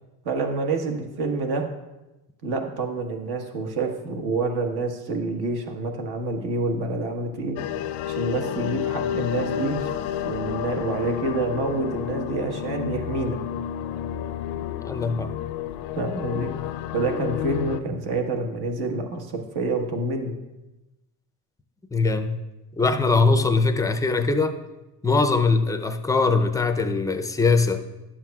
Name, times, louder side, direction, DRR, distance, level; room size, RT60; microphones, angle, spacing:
voice 1, 0.2-1.6 2.4-7.6 8.1-9.9 10.2-13.4 15.9-16.5 16.9-20.3 22.8-22.9, right 3 dB, 60° right, 4 dB, 1.4 m, -27 dB
sound 1, 7.6-17.8, left 10 dB, 70° left, 0.6 m, -30 dB
voice 2, 14.8-15.3 21.9-22.4 22.8-24.6 25.0-27.8, left 3 dB, 10° left, 8 dB, 0.5 m, -21 dB
11.5 x 7.5 x 2.3 m, 1.0 s
supercardioid pair, 95°, 44 cm